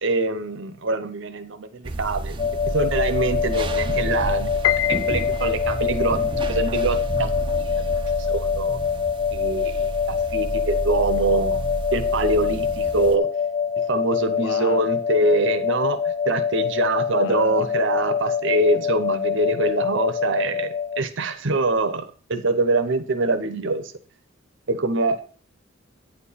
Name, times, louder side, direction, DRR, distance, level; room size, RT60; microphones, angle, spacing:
voice 1, 0.0-2.5 2.7-4.5 5.1-6.2 6.5-7.3 7.6-7.9 8.3-8.8 9.3-9.9 10.3-11.6 11.9-13.3 13.9-23.9 24.7-25.2, right 2 dB, 65° right, 10 dB, 0.8 m, -24 dB
sound 1, 1.8-13.2, right 2 dB, 25° right, 0.6 m, -30 dB
sound 2, 2.4-21.0, left 7 dB, 25° left, 0.6 m, -25 dB
Piano, 4.6-5.9, left 15 dB, 90° left, 0.4 m, -25 dB
voice 2, 14.3-14.9 17.1-17.7, left 4 dB, 70° left, 10 dB, 0.9 m, -34 dB
9.2 x 4.5 x 5.6 m, 0.40 s
head